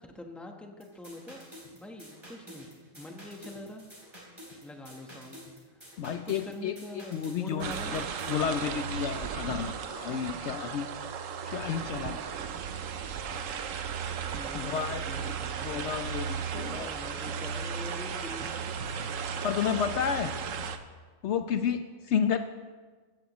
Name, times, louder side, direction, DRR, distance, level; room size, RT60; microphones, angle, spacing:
voice 1, 0.0-1.5 1.7-2.7 2.9-3.8 4.6-5.4 5.7-5.8 6.2-8.0 8.3-8.9 14.3-16.0 16.5-18.6, left 1 dB, ahead, 2 dB, 1.0 m, -44 dB
sound 1, 0.8-8.4, equal, 20° right, 3.4 m, -49 dB
voice 2, 6.0-6.8 7.1-8.0 8.3-10.9 11.5-12.3 14.5-15.3 15.6-16.9 19.4-20.3 21.2-22.4, left 8 dB, 65° left, 8 dB, 0.8 m, -31 dB
sound 2, 7.6-20.8, right 6 dB, 80° right, 1.1 m, -35 dB
15.5 x 14.0 x 3.1 m, 1.4 s
omnidirectional pair, 1.3 m